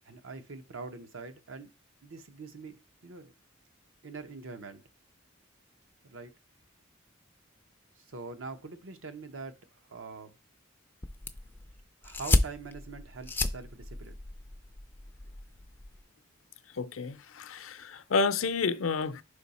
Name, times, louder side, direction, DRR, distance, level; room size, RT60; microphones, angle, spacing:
voice 1, 0.0-1.7 2.0-3.3 4.0-4.8 6.0-6.3 8.0-10.4 12.0-14.2, right 4 dB, 75° right, 0.8 m, -44 dB
sound 1, 11.0-16.0, left 2 dB, 10° left, 0.3 m, -32 dB
voice 2, 16.7-19.2, left 4 dB, 85° left, 0.6 m, -30 dB
5.1 x 4.8 x 4.1 m
head